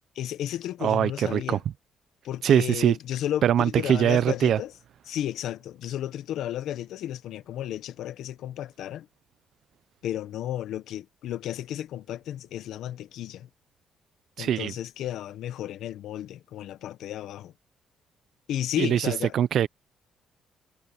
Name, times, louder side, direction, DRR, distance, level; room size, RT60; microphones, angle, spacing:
voice 1, 0.2-1.6 2.2-4.7 5.1-9.1 10.0-13.5 14.4-17.5 18.5-19.3, left 12 dB, 80° left, 1.1 m, -33 dB
voice 2, 0.8-1.6 2.4-3.0 3.4-4.6 14.4-14.7 18.8-19.7, right 10 dB, 70° right, 0.7 m, -22 dB
cardioid pair, 90°, 0 cm